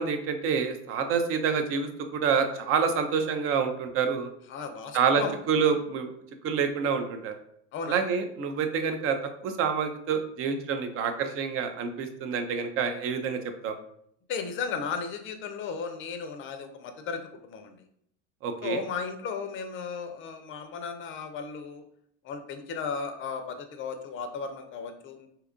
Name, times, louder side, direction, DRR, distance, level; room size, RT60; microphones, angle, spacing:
voice 1, 0.0-4.3 4.9-6.1 6.4-7.3 7.9-9.2 9.4-13.7 18.4-18.8, right 6 dB, 40° right, 7 dB, 0.5 m, -27 dB
voice 2, 4.5-5.4 7.7-8.0 14.3-17.8 18.6-21.8 22.2-25.3, left 5 dB, 35° left, 7 dB, 0.5 m, -35 dB
2.8 x 2.4 x 3.6 m, 0.69 s
supercardioid pair, 110°, 35 cm